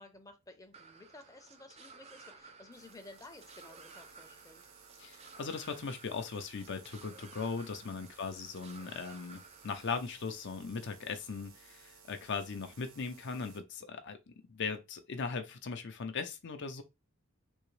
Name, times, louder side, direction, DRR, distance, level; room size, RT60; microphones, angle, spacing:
voice 1, 0.0-4.6 7.8-8.0, left 2 dB, 15° left, 0.6 m, -54 dB
sound 1, 0.7-9.9, right 4 dB, 30° right, 0.5 m, -55 dB
sound 2, 2.7-13.6, right 6 dB, 70° right, 0.8 m, -59 dB
voice 2, 5.0-14.2 14.5-16.8, left 5 dB, 55° left, 0.6 m, -39 dB
3.6 x 2.8 x 3.2 m
head